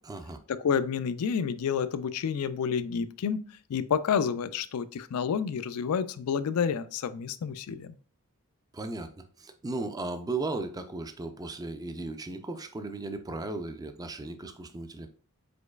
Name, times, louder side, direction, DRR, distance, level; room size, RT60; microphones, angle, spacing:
voice 1, 0.0-0.4 8.7-9.1 9.4-15.1, right 3 dB, 15° right, 0.4 m, -36 dB
voice 2, 0.6-3.4 3.7-8.0, left 7 dB, 75° left, 0.4 m, -29 dB
5.1 x 3.9 x 2.3 m
head